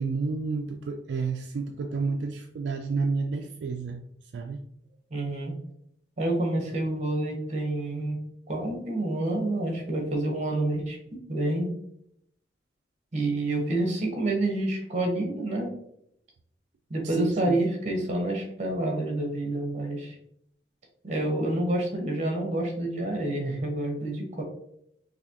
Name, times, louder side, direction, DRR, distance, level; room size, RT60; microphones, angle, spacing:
voice 1, 0.0-4.0 4.3-4.6 17.0-17.6, right 4 dB, 75° right, 4 dB, 0.3 m, -30 dB
voice 2, 5.1-5.5 6.2-8.2 8.5-11.7 13.1-15.7 16.9-20.2 21.0-24.4, right 1 dB, 40° right, 2 dB, 1.0 m, -28 dB
4.0 x 2.7 x 2.8 m, 0.72 s
head